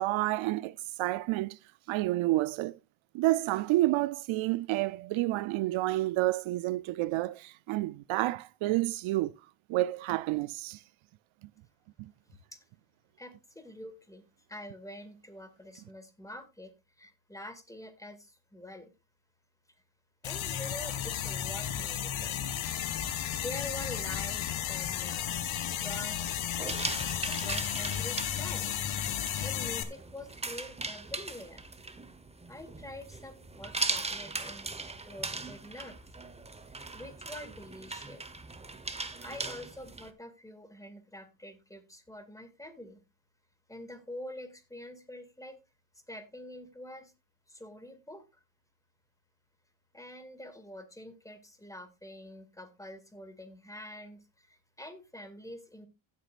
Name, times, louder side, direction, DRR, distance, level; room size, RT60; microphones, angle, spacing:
voice 1, 0.0-1.6 1.9-2.8 3.1-9.3 9.7-10.8 12.0-12.1, right 17 dB, 70° right, 0.5 m, -29 dB
voice 2, 13.2-14.2 14.5-16.7 17.0-18.9 20.2-22.4 22.7-22.8 23.4-25.2 25.6-26.3 27.2-28.7 29.4-31.6 32.5-34.7 35.1-36.0 36.7-38.3 39.2-43.0 43.7-45.6 46.1-47.1 47.5-48.2 49.9-55.9, left 1 dB, 5° left, 2.1 m, -46 dB
sound 1, 20.2-29.8, left 10 dB, 70° left, 2.0 m, -33 dB
sound 2, 26.6-40.1, right 3 dB, 10° right, 1.0 m, -39 dB
16.0 x 8.3 x 2.4 m
cardioid pair, 130°, 50 cm